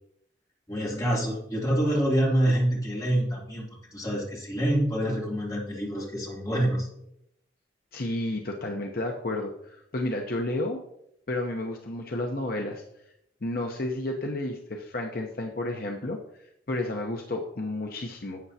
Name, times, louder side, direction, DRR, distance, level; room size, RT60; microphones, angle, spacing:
voice 1, 0.7-6.9, right 1 dB, 20° left, -4 dB, 2.7 m, -26 dB
voice 2, 7.9-10.8 11.3-12.8 13.4-16.2 16.7-18.4, left 1 dB, 55° left, 2 dB, 0.8 m, -31 dB
12.0 x 8.2 x 2.8 m, 0.77 s
head